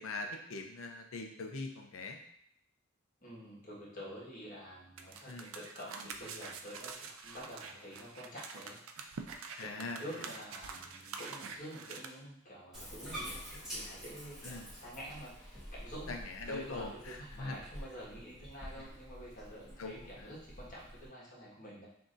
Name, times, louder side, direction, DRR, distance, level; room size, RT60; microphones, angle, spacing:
voice 1, 0.0-2.2 5.3-5.5 9.6-10.0 14.4-14.7 16.1-17.6 18.8-18.9 19.8-20.3, left 3 dB, 90° left, 4 dB, 0.6 m, -42 dB
voice 2, 3.2-8.8 9.6-16.2 16.5-21.9, equal, 40° left, -6 dB, 1.5 m, -48 dB
sound 1, 5.0-12.0, right 5 dB, 85° right, 0.4 m, -46 dB
Bathtub (filling or washing), 12.7-21.1, equal, 5° right, 1.4 m, -48 dB
6.0 x 2.8 x 2.6 m, 0.71 s
head